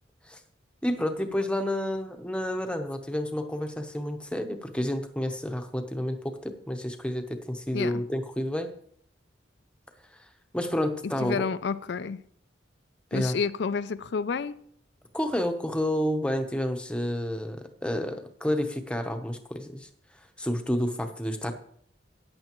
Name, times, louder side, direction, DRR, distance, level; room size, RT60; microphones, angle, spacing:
voice 1, 0.8-8.7 10.1-10.3 10.5-11.5 13.1-13.4 15.1-19.9 20.4-21.5, left 1 dB, 5° left, 0.8 m, -30 dB
voice 2, 11.2-12.2 13.1-14.6, left 5 dB, 60° left, 0.4 m, -30 dB
14.0 x 9.8 x 3.0 m
head